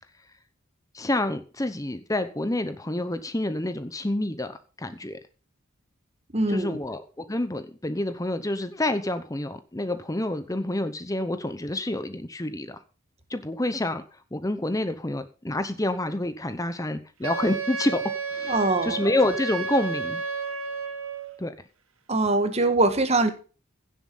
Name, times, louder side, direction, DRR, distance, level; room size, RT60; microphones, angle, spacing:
voice 1, 0.9-5.2 6.5-12.8 13.3-18.0 18.3-20.2 21.4-21.5, left 1 dB, 15° left, 0.9 m, -28 dB
voice 2, 6.3-6.8 18.5-19.0 22.1-23.3, right 2 dB, 30° right, 1.7 m, -22 dB
Wind instrument woodwind instrument, 17.2-21.4, right 4 dB, 85° right, 1.9 m, -31 dB
16.5 x 7.5 x 5.5 m
head